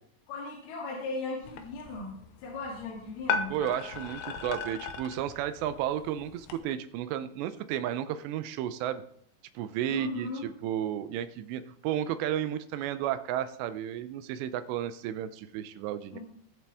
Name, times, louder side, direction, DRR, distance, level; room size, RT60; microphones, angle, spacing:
voice 1, 0.3-2.1 2.4-3.6 9.9-10.4 16.1-16.2, left 3 dB, 65° left, -5 dB, 4.2 m, -37 dB
sound 1, 1.4-6.6, left 6 dB, 85° left, 3.2 m, -37 dB
voice 2, 3.5-9.0 9.6-16.2, right 11 dB, 85° right, 11 dB, 2.8 m, -33 dB
20.0 x 7.7 x 3.5 m, 0.67 s
omnidirectional pair, 4.9 m